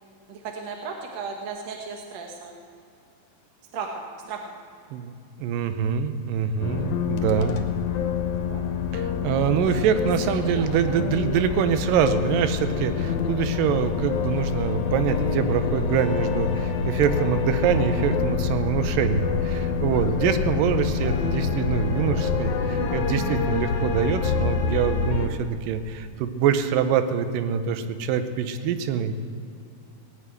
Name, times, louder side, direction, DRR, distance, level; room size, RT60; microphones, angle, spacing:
voice 1, 0.3-2.6 3.7-4.4 8.5-8.6 9.7-9.8 10.3-11.0, right 5 dB, 65° right, 1 dB, 1.9 m, -35 dB
voice 2, 4.9-7.6 8.9-29.2, right 8 dB, 80° right, 9 dB, 2.4 m, -25 dB
sound 1, 6.6-25.3, left 5 dB, 70° left, 2.0 m, -26 dB
18.5 x 6.8 x 9.2 m, 2.4 s
omnidirectional pair, 4.1 m